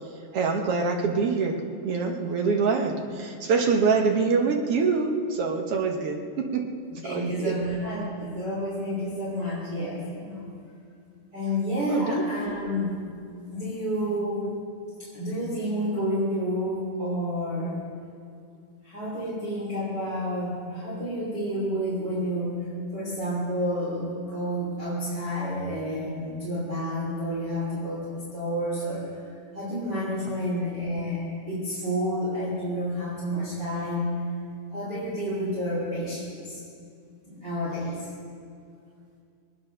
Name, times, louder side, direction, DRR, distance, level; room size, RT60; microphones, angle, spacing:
voice 1, 0.3-6.6 7.0-7.5 11.9-12.2, right 4 dB, 60° right, 3 dB, 1.6 m, -25 dB
voice 2, 7.0-10.5 11.3-13.0 13.5-14.5 15.0-17.8 18.8-29.1 29.5-34.2 34.7-36.6 37.3-37.9, equal, 30° right, -7 dB, 3.5 m, -30 dB
22.5 x 9.7 x 6.5 m, 2.4 s
omnidirectional pair, 4.0 m